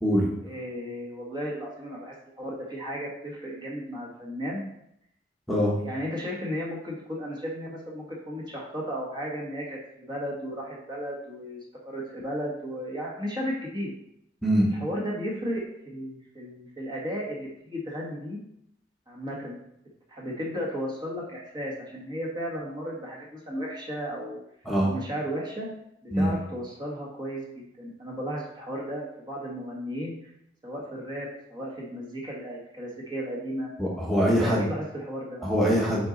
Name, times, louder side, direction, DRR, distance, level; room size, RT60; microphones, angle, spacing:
voice 1, 0.4-4.6 5.8-11.6 11.8-13.9 14.7-18.4 19.1-19.6 20.1-24.4 24.8-25.7 26.0-30.3 30.6-33.7 34.2-35.4, equal, 25° right, -3 dB, 1.4 m, -34 dB
voice 2, 33.8-34.7 35.4-36.1, equal, ahead, -6 dB, 1.2 m, -23 dB
8.1 x 3.9 x 4.0 m, 0.77 s
head